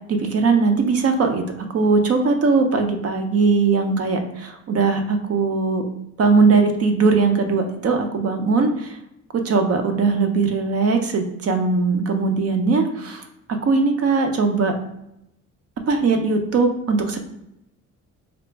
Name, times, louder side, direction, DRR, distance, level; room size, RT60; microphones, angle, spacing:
voice 1, 0.1-1.4 1.7-5.9 6.2-9.0 9.3-14.7 15.9-17.2, right 4 dB, 50° right, 5 dB, 0.7 m, -20 dB
3.9 x 2.1 x 3.4 m, 0.82 s
cardioid pair, 90°, 30 cm